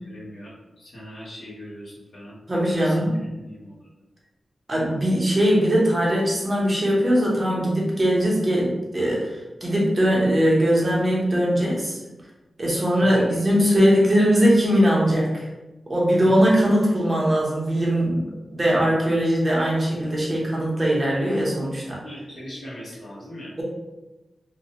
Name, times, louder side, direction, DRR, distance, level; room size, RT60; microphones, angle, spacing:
voice 1, 0.0-2.4 2.7-3.9 12.9-13.3 16.1-16.2 22.0-23.5, equal, 65° left, -7 dB, 1.1 m, -40 dB
voice 2, 2.5-3.2 4.7-12.0 12.6-15.5 15.9-18.2 18.5-22.0, equal, 30° right, -4 dB, 0.8 m, -20 dB
3.1 x 2.2 x 2.8 m, 1.0 s
wide cardioid pair, 120°, 0 cm